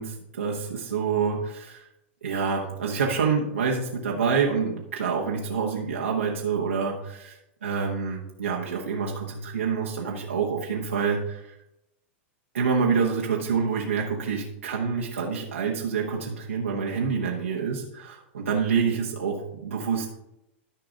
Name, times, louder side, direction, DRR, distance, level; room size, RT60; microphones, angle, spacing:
voice 1, 0.0-1.9 2.2-11.5 12.5-20.1, right 5 dB, 85° right, -2 dB, 1.3 m, -27 dB
13.5 x 5.0 x 3.8 m, 0.86 s
hypercardioid pair, 105°, 7 cm